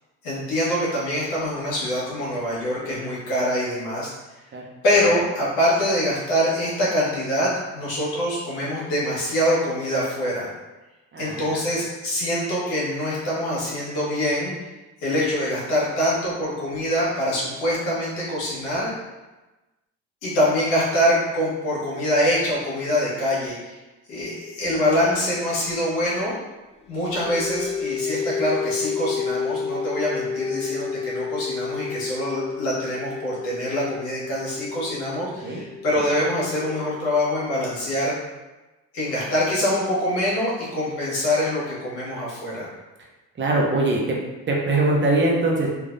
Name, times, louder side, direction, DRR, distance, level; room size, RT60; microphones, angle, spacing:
voice 1, 0.2-4.1 4.8-10.5 11.2-14.5 15.0-18.9 20.2-23.7 24.1-26.3 26.9-38.1 38.9-42.7, equal, 85° left, -7 dB, 1.5 m, -24 dB
voice 2, 11.1-11.6 35.4-35.6 43.4-44.2 44.5-45.7, right 2 dB, 35° right, -2 dB, 0.8 m, -22 dB
sound 1, 26.8-37.8, left 5 dB, 20° left, 0.6 m, -31 dB
3.3 x 2.7 x 2.6 m, 1.1 s
supercardioid pair, 85°, 35 cm